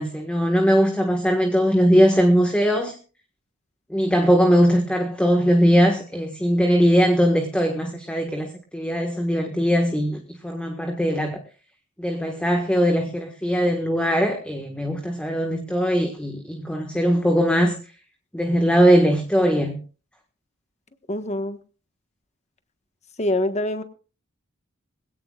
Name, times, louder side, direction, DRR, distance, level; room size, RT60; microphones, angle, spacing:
voice 1, 0.0-2.9 3.9-11.4 12.0-17.8 18.3-19.8, equal, 5° left, 1.6 m, -20 dB
voice 2, 21.1-21.6 23.2-23.8, left 1 dB, 35° left, 1.4 m, -24 dB
21.5 x 17.0 x 2.4 m
head